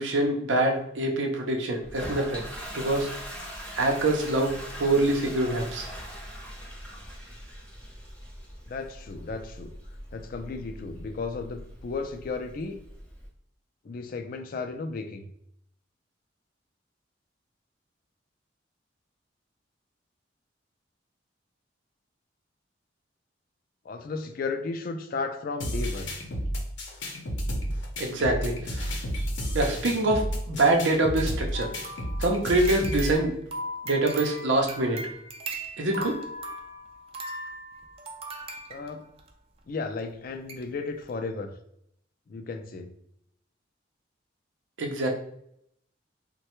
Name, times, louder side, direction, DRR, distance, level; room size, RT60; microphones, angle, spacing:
voice 1, 0.0-2.4 2.7-3.1 3.7-5.9 28.0-28.9 29.5-31.7 32.2-33.3 33.8-35.1 35.8-36.2 44.8-45.1, right 2 dB, 85° right, 2 dB, 0.6 m, -25 dB
Toilet flush, 1.8-13.3, equal, 5° left, 0.6 m, -41 dB
voice 2, 8.7-9.7 10.1-12.8 13.8-15.3 23.8-26.1 29.8-29.9 38.7-39.1 39.7-41.5 42.3-42.9, left 4 dB, 50° left, 6 dB, 0.3 m, -34 dB
sound 1, 25.6-33.2, equal, 80° left, 0.7 m, -31 dB
sound 2, 31.5-39.3 40.0-40.1 40.5-40.6 41.0-41.1, right 1 dB, 30° right, 0.4 m, -39 dB
3.2 x 2.2 x 2.9 m, 0.73 s
head